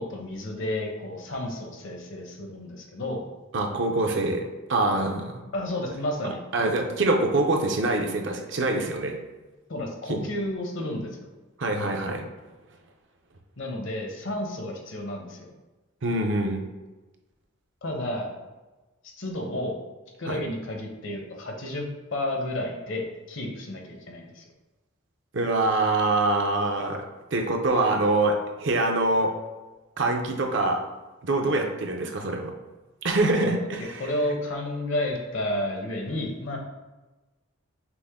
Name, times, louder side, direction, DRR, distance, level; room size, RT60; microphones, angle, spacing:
voice 1, 0.0-3.3 5.5-6.8 9.7-11.3 13.6-15.5 17.8-18.3 19.2-19.8 20.2-24.4 33.4-33.7 34.0-36.6, left 1 dB, 60° left, 1 dB, 0.8 m, -31 dB
voice 2, 3.5-5.4 6.5-9.2 10.1-10.2 11.6-12.3 16.0-16.6 20.3-20.4 25.3-27.0 27.3-29.3 30.0-30.8 31.2-32.5 33.0-34.0, right 2 dB, 55° right, 3 dB, 0.6 m, -24 dB
6.0 x 2.1 x 3.5 m, 1.2 s
head